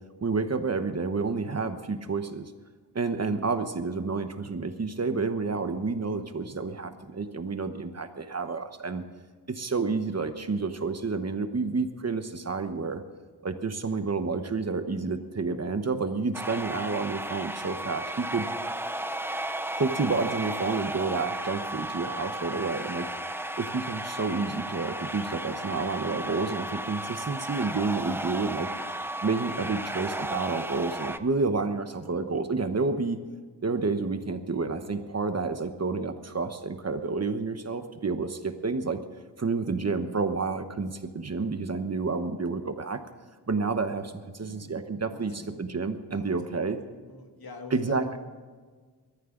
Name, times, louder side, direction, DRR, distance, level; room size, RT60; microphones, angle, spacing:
voice 1, 0.2-2.5 2.9-9.0 9.5-13.0 13.4-18.5 19.7-23.1 23.6-28.7 29.2-33.2 33.6-39.0 39.4-43.0 43.5-46.8 47.7-48.0, right 4 dB, 40° right, 8 dB, 1.1 m, -29 dB
sound 1, 16.3-31.2, right 1 dB, 5° right, 0.6 m, -34 dB
voice 2, 44.1-44.8 45.1-45.7 46.1-48.2, left 3 dB, 60° left, 4 dB, 2.1 m, -45 dB
22.5 x 13.5 x 3.9 m, 1.5 s
wide cardioid pair, 145°, 41 cm